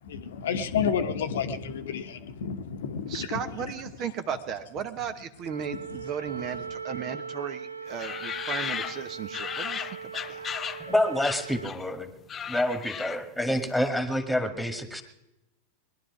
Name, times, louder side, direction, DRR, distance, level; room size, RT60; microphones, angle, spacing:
voice 1, 0.0-3.7 5.7-6.1 6.6-6.7, left 6 dB, 60° left, 1.1 m, -31 dB
voice 2, 3.1-10.5, right 7 dB, 35° right, 1.1 m, -35 dB
Wind instrument woodwind instrument, 5.4-11.7, right 5 dB, 85° right, 0.5 m, -40 dB
sound 1, 8.0-10.9 11.2-11.9 12.2-13.4, left 8 dB, 25° left, 0.5 m, -35 dB
voice 3, 10.8-12.1 12.5-15.0, left 1 dB, 5° left, 1.9 m, -27 dB
22.0 x 11.5 x 4.9 m
figure-of-eight pair, 90°, 0 cm